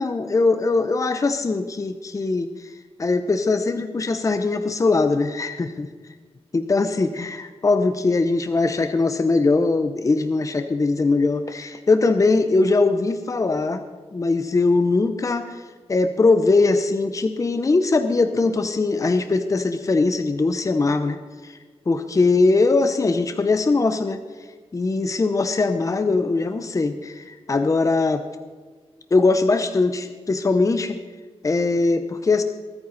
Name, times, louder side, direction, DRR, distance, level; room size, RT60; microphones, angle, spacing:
voice 1, 0.0-2.7 3.0-5.9 6.5-13.8 14.1-15.6 15.9-21.6 21.9-24.2 24.7-28.2 29.1-31.0 31.4-32.4, left 3 dB, 30° left, 8 dB, 0.8 m, -21 dB
22.5 x 9.3 x 4.1 m, 1.5 s
wide cardioid pair, 130°, 11 cm